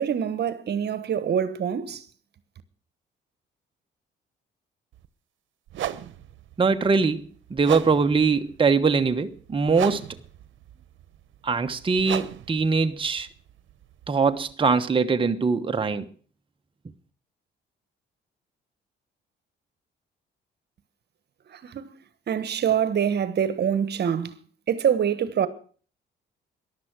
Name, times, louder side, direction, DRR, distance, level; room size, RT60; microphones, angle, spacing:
voice 1, 0.0-2.1 21.5-21.9 22.3-24.3 24.7-25.5, right 8 dB, 55° right, 1.3 m, -25 dB
sound 1, 4.9-5.1 5.7-14.5, right 12 dB, 75° right, 1.0 m, -37 dB
voice 2, 6.6-7.2 7.5-10.0 11.4-13.3 14.1-16.1, right 4 dB, 25° right, 1.2 m, -22 dB
14.0 x 11.5 x 6.2 m
cardioid pair, 90°, 20 cm